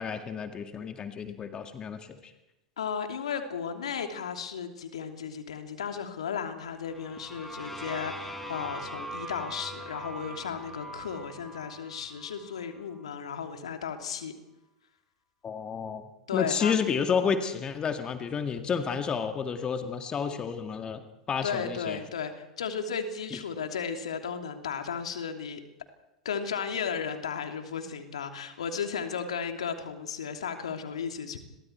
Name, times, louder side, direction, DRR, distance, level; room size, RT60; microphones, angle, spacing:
voice 1, 0.0-2.3 15.4-16.0 16.3-22.0, left 6 dB, 25° left, 6 dB, 2.0 m, -30 dB
voice 2, 2.8-14.3 16.3-16.7 21.4-25.6 26.2-31.4, left 6 dB, 70° left, 5 dB, 2.9 m, -34 dB
sound 1, 6.8-12.7, right 1 dB, 5° left, 5.0 m, -41 dB
30.0 x 23.0 x 4.6 m, 0.95 s
figure-of-eight pair, 90°, 3 cm